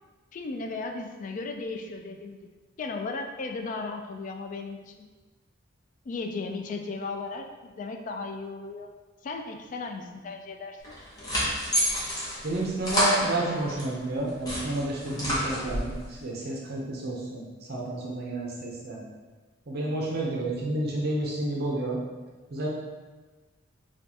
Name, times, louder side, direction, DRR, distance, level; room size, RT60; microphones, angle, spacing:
voice 1, 0.3-2.5 2.8-5.1 6.1-8.9 9.2-10.9, left 3 dB, 40° left, 5 dB, 0.3 m, -36 dB
sound 1, 10.8-13.9 14.3-16.0, equal, 20° left, 0.9 m, -29 dB
voice 2, 12.4-17.4 17.7-19.0 19.7-22.0 22.5-22.7, right 2 dB, 50° right, -3 dB, 0.6 m, -30 dB
4.4 x 2.4 x 2.7 m, 1.3 s
head